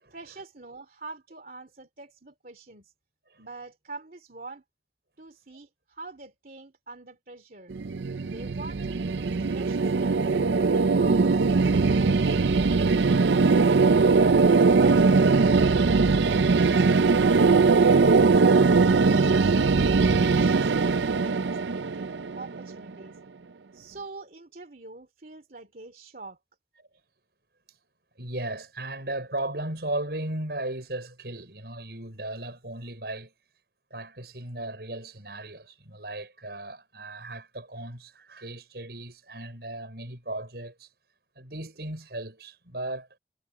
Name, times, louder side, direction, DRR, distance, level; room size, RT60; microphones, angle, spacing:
voice 1, 0.1-2.9 3.4-4.6 5.2-7.7 8.2-11.5 11.9-12.6 13.1-13.9 14.2-19.7 20.2-23.2 23.7-26.4, right 3 dB, 50° right, 2.9 m, -45 dB
sound 1, 7.7-22.8, right 4 dB, 90° right, 0.5 m, -21 dB
voice 2, 28.2-33.3 33.9-40.9 41.4-43.2, right 1 dB, 65° right, 5.7 m, -36 dB
head